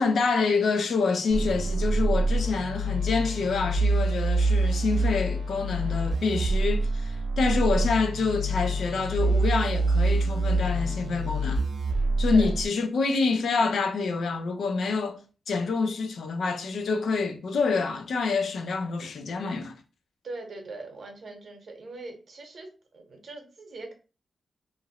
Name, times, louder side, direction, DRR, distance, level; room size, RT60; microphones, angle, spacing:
voice 1, 0.0-11.6 12.2-15.2 15.5-19.7, left 4 dB, 75° left, 0.4 m, -27 dB
sound 1, 1.3-12.7, right 2 dB, 90° right, 0.6 m, -26 dB
voice 2, 20.2-22.7 22.9-23.9, right 2 dB, 55° right, 0.8 m, -41 dB
3.0 x 2.5 x 2.8 m
wide cardioid pair, 175°, 0 cm